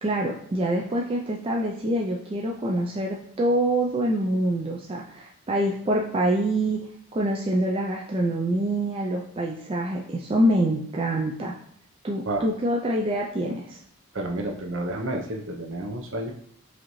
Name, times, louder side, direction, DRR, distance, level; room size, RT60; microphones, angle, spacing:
voice 1, 0.0-6.8 7.1-11.5 12.0-13.8, right 1 dB, 25° right, -2 dB, 0.3 m, -25 dB
voice 2, 14.1-16.3, right 1 dB, 55° right, 3 dB, 0.6 m, -30 dB
4.8 x 2.7 x 3.0 m, 0.66 s
head